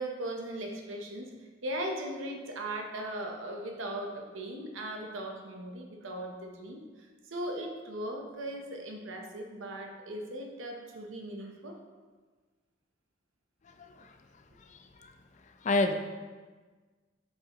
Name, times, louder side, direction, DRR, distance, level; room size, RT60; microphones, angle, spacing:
voice 1, 0.0-1.3 1.6-11.8, right 1 dB, 80° right, 2 dB, 0.9 m, -38 dB
voice 2, 13.7-14.2 14.7-15.1 15.6-15.9, left 2 dB, 40° left, 7 dB, 0.4 m, -30 dB
7.5 x 4.8 x 3.0 m, 1.4 s
head